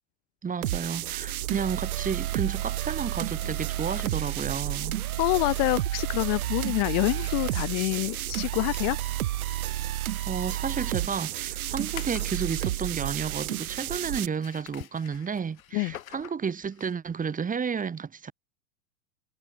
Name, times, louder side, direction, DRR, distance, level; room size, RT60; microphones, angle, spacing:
voice 1, 0.4-5.0 10.3-18.3, right 6 dB, 20° right, 2.6 m, -32 dB
sound 1, 0.6-14.3, right 14 dB, 85° right, 0.6 m, -31 dB
sound 2, 3.2-13.4 14.2-17.1, left 12 dB, 75° left, 4.4 m, -49 dB
voice 2, 5.2-9.0 15.7-15.9, left 35 dB, 45° left, 0.7 m, -26 dB
hypercardioid pair, 95°, 42 cm